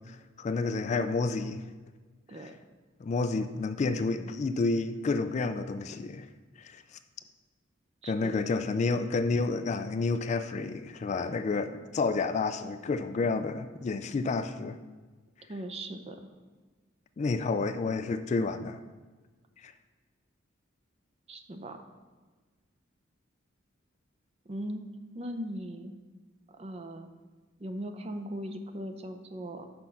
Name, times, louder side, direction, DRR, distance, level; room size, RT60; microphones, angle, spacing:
voice 1, 0.1-1.6 3.0-6.3 6.6-6.8 8.1-14.8 17.2-18.8 19.6-19.7, left 3 dB, 35° left, 10 dB, 0.3 m, -30 dB
voice 2, 8.0-8.4 15.5-16.3 21.3-21.8 24.5-24.8 25.1-25.9 26.6-27.1 27.6-29.7, right 1 dB, 30° right, 6 dB, 0.6 m, -39 dB
6.0 x 5.1 x 5.7 m, 1.4 s
head